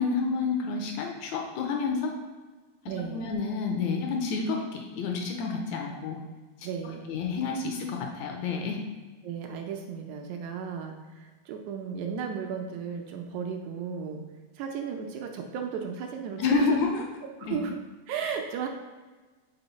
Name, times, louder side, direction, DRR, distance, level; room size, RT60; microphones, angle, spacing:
voice 1, 0.0-2.1 3.0-6.2 7.1-8.8 16.4-17.0 17.4-17.6, left 5 dB, 80° left, 2 dB, 1.8 m, -29 dB
voice 2, 2.9-3.3 6.6-7.2 9.2-14.2 14.5-16.8 17.4-17.8 18.1-18.7, right 6 dB, 80° right, 3 dB, 1.7 m, -34 dB
5.5 x 4.3 x 4.0 m, 1.3 s
omnidirectional pair, 3.5 m